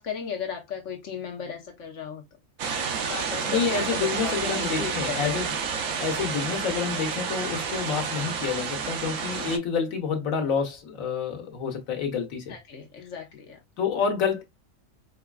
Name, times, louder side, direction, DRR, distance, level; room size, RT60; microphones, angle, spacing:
voice 1, 0.0-2.2 3.0-5.4 12.5-13.6, left 6 dB, 65° left, 1.2 m, -36 dB
sound 1, 2.6-9.6, right 6 dB, 70° right, 1.0 m, -30 dB
voice 2, 3.4-12.6 13.8-14.4, left 6 dB, 90° left, 1.4 m, -28 dB
4.9 x 2.4 x 2.2 m
omnidirectional pair, 1.4 m